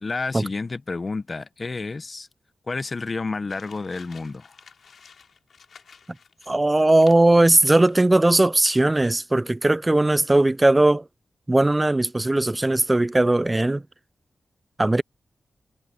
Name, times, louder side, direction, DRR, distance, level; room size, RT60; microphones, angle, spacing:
voice 1, 0.0-2.3 2.7-4.5, left 3 dB, 40° left, 0.9 m, -30 dB
sound 1, 3.5-8.3 8.6-9.1, left 6 dB, 80° left, 3.1 m, -51 dB
voice 2, 6.5-11.0 11.5-13.8 14.8-15.0, right 2 dB, 20° right, 0.3 m, -18 dB
wide cardioid pair, 80°, 0 cm